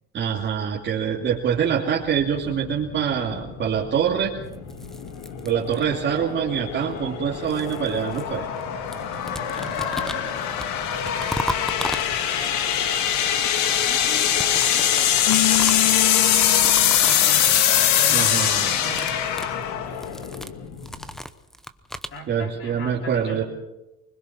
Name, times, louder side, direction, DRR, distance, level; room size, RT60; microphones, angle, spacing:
voice 1, 0.1-4.3 5.4-8.5 18.1-18.7 22.3-23.4, right 8 dB, 35° right, -3 dB, 2.7 m, -25 dB
sound 1, 2.1-21.2, left 10 dB, 65° left, 2.2 m, -23 dB
sound 2, 4.5-6.1 7.0-8.6 8.9-12.5 14.0-17.3 17.6-17.9 18.2-18.5 18.8-22.2, equal, ahead, 0.9 m, -36 dB
voice 2, 9.2-10.4 11.2-12.2 13.0-16.0 16.8-17.5 17.9-19.3 22.1-23.4, left 1 dB, 40° left, 2 dB, 5.1 m, -41 dB
Keyboard (musical), 15.3-17.2, left 13 dB, 85° left, 1.5 m, -27 dB
24.5 x 21.0 x 6.1 m, 0.97 s
cardioid pair, 125°, 31 cm